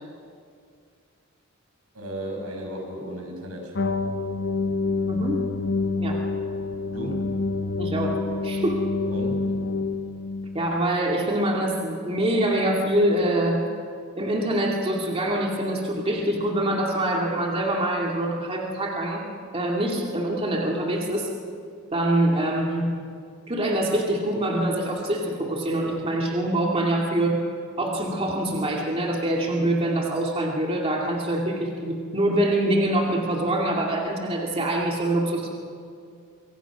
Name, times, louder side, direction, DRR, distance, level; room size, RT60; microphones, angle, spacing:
voice 1, 1.9-3.7 6.9-7.3 9.0-9.5, equal, 85° right, 2 dB, 5.8 m, -34 dB
sound 1, 3.7-10.8, left 3 dB, 55° left, 0.9 m, -27 dB
voice 2, 5.1-5.4 6.0-6.2 7.8-8.1 8.4-8.9 10.5-13.6 14.2-19.2 19.5-21.3 21.9-22.9 23.5-27.4 27.8-35.5, right 1 dB, 25° right, -1 dB, 2.4 m, -24 dB
25.5 x 24.0 x 6.1 m, 2.3 s
head